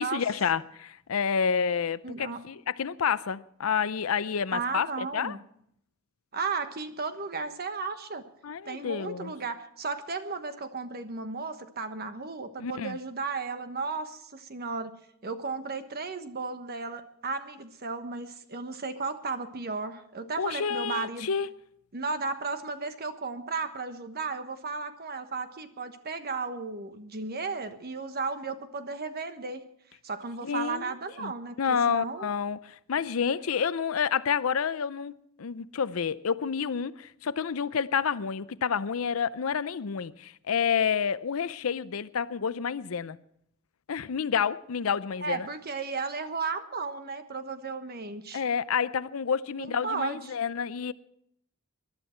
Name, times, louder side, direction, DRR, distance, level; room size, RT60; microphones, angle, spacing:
voice 1, 0.0-5.4 8.4-9.3 12.6-13.0 20.4-21.5 30.4-30.9 31.2-31.3 31.6-43.2 43.9-45.5 48.3-50.9, left 6 dB, 80° left, 0.6 m, -29 dB
voice 2, 2.0-2.4 4.5-5.4 6.3-8.2 8.6-14.9 15.2-21.3 21.9-29.6 30.0-32.3 45.2-48.4 49.6-50.3, right 4 dB, 50° right, 1.3 m, -34 dB
20.5 x 11.5 x 4.4 m
head